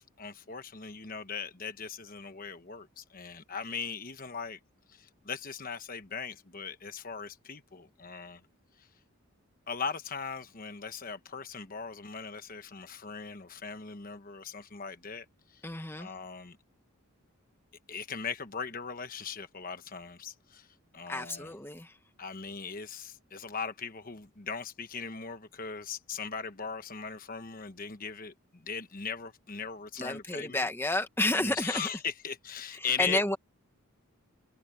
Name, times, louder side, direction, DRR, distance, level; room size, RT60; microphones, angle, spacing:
voice 1, 0.0-4.6 4.9-8.4 8.8-8.9 9.7-15.3 15.5-15.6 15.9-16.6 17.9-20.7 20.9-21.5 22.2-30.7 31.3-33.2, left 6 dB, 40° left, 1.1 m, -39 dB
voice 2, 15.6-16.1 21.1-22.0 30.0-31.9 32.8-33.4, left 2 dB, 10° left, 1.3 m, -31 dB
head